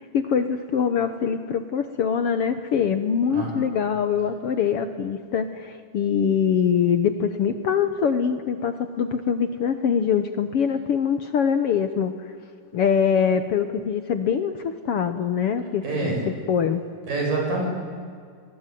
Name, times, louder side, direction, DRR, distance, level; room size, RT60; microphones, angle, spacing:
voice 1, 0.0-12.1 12.7-16.1 16.5-16.8, left 7 dB, 65° left, 9 dB, 1.6 m, -23 dB
voice 2, 15.8-16.3 17.1-17.7, right 3 dB, 85° right, 0 dB, 8.7 m, -26 dB
29.5 x 21.0 x 9.3 m, 2.2 s
omnidirectional pair, 3.7 m